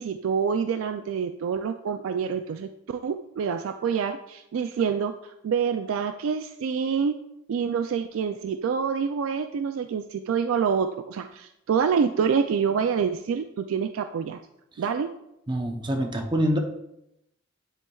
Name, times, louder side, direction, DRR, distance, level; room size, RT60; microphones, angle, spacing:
voice 1, 0.0-7.2 7.5-14.4 14.8-15.1, right 6 dB, 75° right, 8 dB, 0.3 m, -27 dB
voice 2, 15.5-16.6, equal, 20° right, 3 dB, 0.7 m, -26 dB
9.9 x 4.4 x 2.3 m, 0.83 s
head